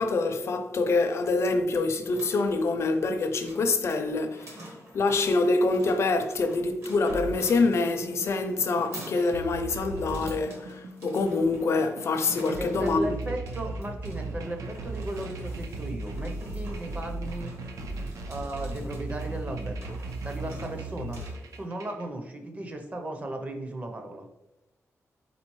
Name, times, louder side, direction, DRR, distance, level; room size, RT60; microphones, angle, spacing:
voice 1, 0.0-13.0, left 3 dB, 55° left, 0.5 m, -26 dB
sound 1, 1.9-21.7, right 1 dB, 55° right, 1.1 m, -48 dB
sound 2, 7.1-22.0, right 2 dB, 85° right, 0.5 m, -37 dB
voice 2, 12.5-17.6 18.3-20.0 20.2-21.2 21.6-24.3, right 1 dB, 25° right, 0.6 m, -36 dB
4.1 x 3.7 x 3.1 m
wide cardioid pair, 135°, 5 cm